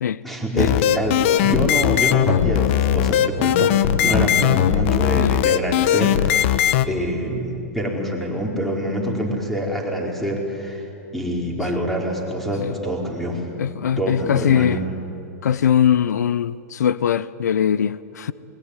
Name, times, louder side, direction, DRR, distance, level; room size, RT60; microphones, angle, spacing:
voice 1, 0.2-3.7 4.0-10.9 11.1-13.4 14.0-14.8, equal, ahead, 4.4 m, -25 dB
sound 1, 0.6-6.9, left 11 dB, 50° left, 1.2 m, -19 dB
voice 2, 13.6-14.8 15.4-18.3, left 9 dB, 90° left, 0.8 m, -21 dB
27.0 x 21.5 x 9.9 m
hypercardioid pair, 150°, 9 cm